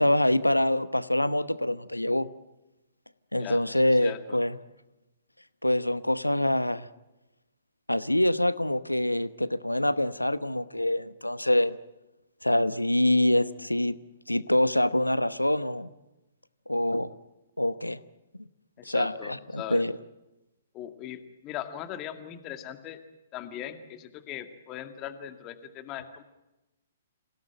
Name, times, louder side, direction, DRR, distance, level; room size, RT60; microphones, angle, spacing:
voice 1, 0.0-2.3 3.3-4.6 5.6-6.9 7.9-11.8 12.4-13.9 14.3-15.9 16.7-17.1 17.6-18.0 18.8-19.9, left 1 dB, 90° left, 15 dB, 1.0 m, -25 dB
voice 2, 4.0-4.4 18.8-19.8 20.7-23.0 23.3-26.2, left 11 dB, 25° left, 7 dB, 2.1 m, -39 dB
27.5 x 17.5 x 9.0 m, 0.99 s
figure-of-eight pair, 120°, 0 cm